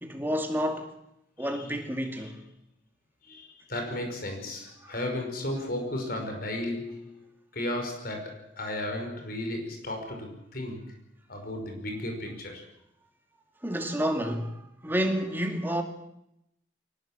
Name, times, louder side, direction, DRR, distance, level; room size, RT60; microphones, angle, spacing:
voice 1, 0.0-0.9 1.4-2.4 13.6-15.8, equal, 10° right, 2.4 m, -29 dB
voice 2, 3.2-7.3 7.5-10.9 11.3-12.6, left 1 dB, 55° left, 5.5 m, -34 dB
23.0 x 19.0 x 7.5 m
head